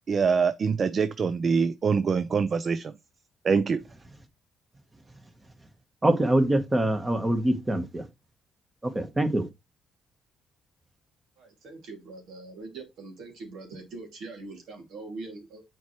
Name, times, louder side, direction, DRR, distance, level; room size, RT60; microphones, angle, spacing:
voice 1, 0.1-2.9 3.4-3.8, right 5 dB, 45° right, 0.5 m, -24 dB
voice 2, 6.0-8.1 8.8-9.5, right 1 dB, 20° right, 1.3 m, -24 dB
voice 3, 11.4-15.6, right 3 dB, 80° right, 2.6 m, -42 dB
7.1 x 4.5 x 3.2 m
cardioid pair, 90°, 0 cm